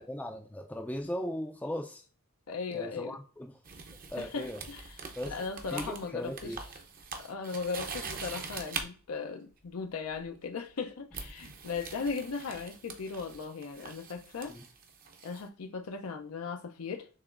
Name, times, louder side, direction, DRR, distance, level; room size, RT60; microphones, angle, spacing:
voice 1, 0.1-2.1 2.7-3.5 4.1-4.6 5.2-5.4 5.7-6.6 14.5-14.6, equal, 5° left, 0.3 m, -38 dB
voice 2, 2.5-3.2 4.2-5.0 5.3-6.6 7.2-14.6 15.2-17.1, left 5 dB, 85° left, 0.5 m, -37 dB
sound 1, 3.6-8.9 10.1-10.4 11.1-15.4, right 5 dB, 40° right, 0.7 m, -43 dB
6.7 x 3.0 x 2.5 m
head